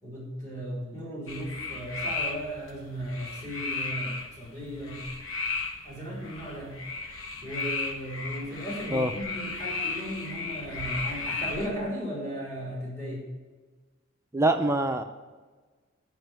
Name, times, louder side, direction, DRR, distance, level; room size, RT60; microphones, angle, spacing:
voice 1, 0.0-5.0 5.8-6.8 7.4-13.2, equal, 15° left, -4 dB, 3.0 m, -36 dB
sound 1, 1.3-11.7, left 3 dB, 80° left, 1.4 m, -35 dB
voice 2, 14.3-15.0, right 1 dB, 15° right, 6 dB, 0.4 m, -24 dB
9.5 x 5.2 x 7.8 m, 1.3 s
head